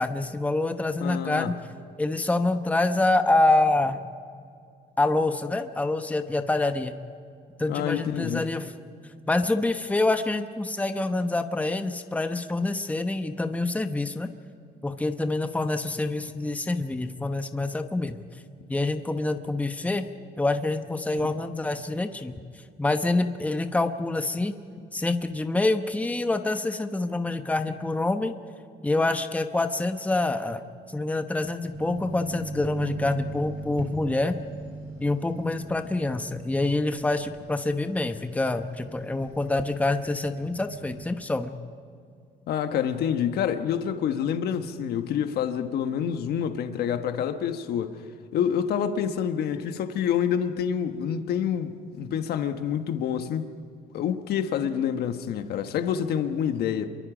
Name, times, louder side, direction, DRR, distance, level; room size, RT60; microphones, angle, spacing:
voice 1, 0.0-1.5 2.0-4.0 5.0-6.9 7.6-8.7 9.3-14.3 14.8-18.2 18.7-20.0 20.4-22.3 22.8-24.5 24.9-28.3 28.8-34.3 35.0-41.5, left 2 dB, 10° left, 1.0 m, -26 dB
voice 2, 1.0-1.5 7.7-8.5 42.5-48.0 48.3-53.4 53.9-56.9, left 8 dB, 70° left, 1.3 m, -27 dB
sound 1, 31.7-41.1, right 3 dB, 90° right, 3.4 m, -39 dB
27.5 x 23.0 x 5.1 m
cardioid pair, 110°, 17 cm